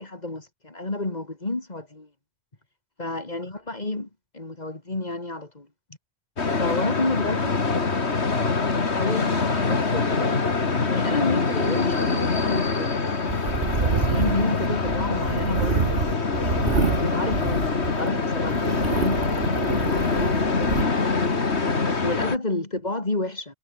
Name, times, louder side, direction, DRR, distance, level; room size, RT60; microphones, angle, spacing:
voice 1, 0.0-2.1 3.0-4.1 4.3-5.7 6.6-7.6 9.0-10.3 10.9-13.1 13.7-15.9 16.4-16.6 16.9-19.3 19.6-20.9 22.0-23.5, left 2 dB, 40° left, 2.7 m, -30 dB
sound 1, 6.4-22.4, left 4 dB, 90° left, 2.6 m, -24 dB
sound 2, 13.3-18.1 18.4-20.8, right 5 dB, 60° right, 1.5 m, -27 dB
omnidirectional pair, 1.1 m